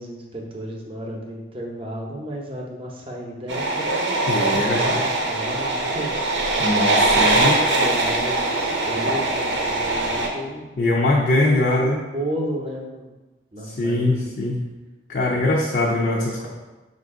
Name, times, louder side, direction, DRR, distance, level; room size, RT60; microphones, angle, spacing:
voice 1, 0.0-4.2 4.5-6.4 6.8-10.6 11.2-13.1 13.5-14.3 15.3-15.5 15.9-16.5, equal, 30° right, 0 dB, 0.6 m, -33 dB
sound 1, 3.5-10.3, right 2 dB, 70° right, 0.7 m, -22 dB
voice 2, 4.3-5.0 6.6-7.6 10.8-12.0 13.8-14.7 15.1-16.5, left 2 dB, 50° left, -2 dB, 0.4 m, -22 dB
5.2 x 2.5 x 3.6 m, 1.1 s
head